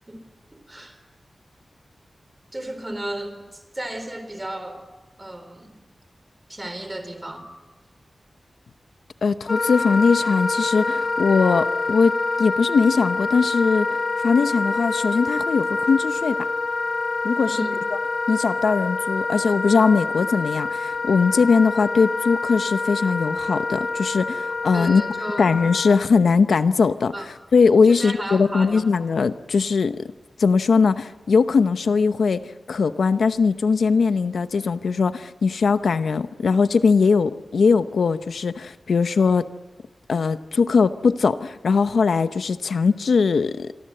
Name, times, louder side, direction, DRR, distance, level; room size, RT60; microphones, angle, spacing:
voice 1, 0.5-1.0 2.5-4.8 5.2-5.8 6.5-7.5 17.5-17.8 24.7-25.5 27.1-27.3 27.8-28.8, right 1 dB, 20° right, 9 dB, 3.8 m, -34 dB
voice 2, 9.2-16.4 17.2-17.6 18.3-25.0 25.4-30.1 30.4-39.5 40.1-43.7, left 5 dB, 90° left, 11 dB, 0.8 m, -20 dB
Wind instrument woodwind instrument, 9.5-26.1, left 3 dB, 45° left, 1.1 m, -26 dB
27.5 x 24.0 x 7.8 m, 1.2 s
wide cardioid pair, 115°, 0 cm